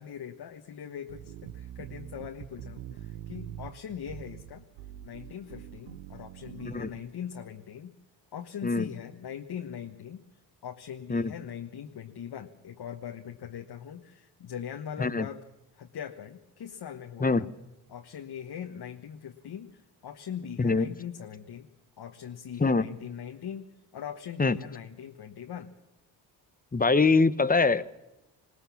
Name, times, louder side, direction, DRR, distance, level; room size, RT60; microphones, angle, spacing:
voice 1, 0.0-4.6 5.0-7.9 8.3-10.2 10.6-15.4 15.7-17.5 17.9-21.7 22.0-25.7, left 8 dB, 55° left, 4 dB, 1.4 m, -41 dB
sound 1, 1.1-7.1, right 12 dB, 85° right, 0.9 m, -44 dB
voice 2, 26.7-27.8, left 4 dB, 20° left, 15 dB, 0.9 m, -23 dB
20.5 x 19.0 x 7.2 m, 0.96 s
supercardioid pair, 60°, 46 cm